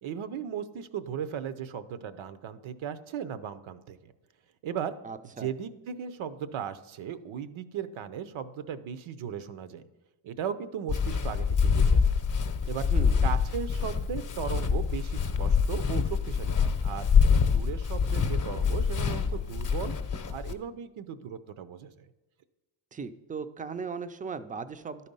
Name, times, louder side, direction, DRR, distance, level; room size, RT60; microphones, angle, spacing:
voice 1, 0.0-4.1 4.6-4.9 5.4-9.8 10.2-12.1 12.6-12.9 13.2-17.1 17.5-19.9 20.3-22.1, right 8 dB, 70° right, 13 dB, 0.7 m, -37 dB
voice 2, 5.0-5.5 12.9-13.2 22.9-25.1, right 5 dB, 20° right, 11 dB, 0.4 m, -37 dB
Walk footsteps, 10.9-20.5, left 6 dB, 40° left, 0.7 m, -26 dB
11.0 x 4.2 x 5.3 m, 1.2 s
cardioid pair, 85°, 50 cm